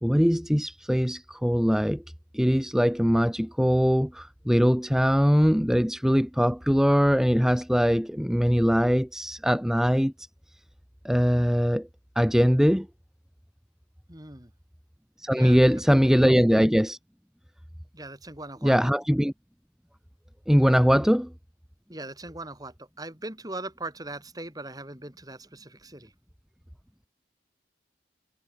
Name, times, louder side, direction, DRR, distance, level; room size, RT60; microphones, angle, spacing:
voice 1, 0.0-2.0 2.3-10.3 11.0-11.9 12.1-12.9 15.2-17.0 18.6-19.3 20.5-21.3, equal, 5° right, 1.3 m, -22 dB
voice 2, 14.1-14.5 15.3-15.8 16.1-16.4 17.9-18.8 20.9-21.1 21.9-26.1, right 2 dB, 20° right, 7.3 m, -40 dB
head